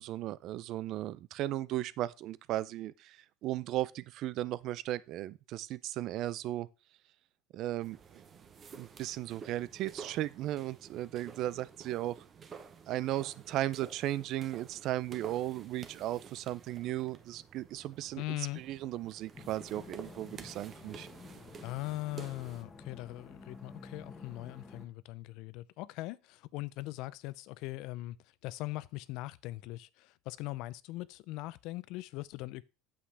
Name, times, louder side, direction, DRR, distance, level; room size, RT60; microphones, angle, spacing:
voice 1, 0.0-6.7 7.5-8.2 8.7-12.2 12.9-21.1, right 14 dB, 50° right, 0.4 m, -36 dB
sound 1, 7.8-22.6, right 6 dB, 25° right, 0.9 m, -51 dB
voice 2, 18.2-18.6 21.6-28.2 28.4-32.6, left 18 dB, 60° left, 0.4 m, -40 dB
sound 2, 19.3-24.9, left 3 dB, 15° left, 1.3 m, -51 dB
8.5 x 7.3 x 3.3 m
cardioid pair, 150°, 0 cm